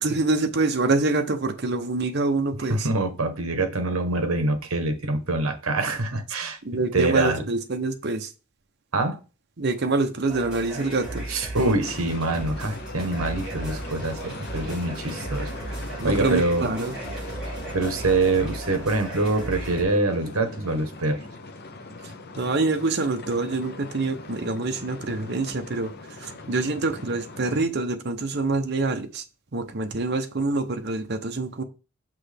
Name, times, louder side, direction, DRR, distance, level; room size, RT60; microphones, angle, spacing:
voice 1, 0.0-2.9 6.6-8.3 9.6-11.3 16.0-17.0 22.4-29.2 29.5-31.6, right 3 dB, 50° right, 0.8 m, -26 dB
voice 2, 2.7-6.6 6.9-7.4 8.9-9.2 11.3-15.5 16.0-16.7 17.7-21.2, right 2 dB, 75° right, 1.1 m, -25 dB
sound 1, 10.3-19.8, right 1 dB, 5° right, 4.2 m, -36 dB
sound 2, 11.8-27.6, left 3 dB, 45° left, 0.7 m, -40 dB
6.2 x 5.6 x 3.4 m
head